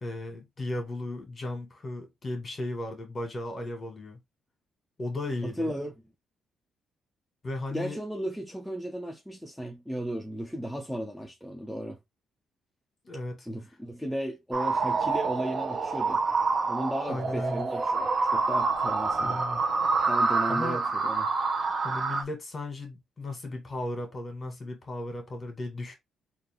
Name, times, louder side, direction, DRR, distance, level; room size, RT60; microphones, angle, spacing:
voice 1, 0.0-4.2 5.0-5.8 7.4-8.0 13.0-13.5 17.1-17.7 19.2-19.6 20.5-20.8 21.8-25.9, left 2 dB, 30° left, 2.0 m, -35 dB
voice 2, 5.4-5.9 7.7-12.0 13.5-16.2 16.6-19.4 20.0-21.3, equal, ahead, 0.7 m, -35 dB
sound 1, 14.5-22.2, right 4 dB, 40° right, 0.9 m, -27 dB
3.7 x 2.7 x 3.6 m
cardioid pair, 90°, 0 cm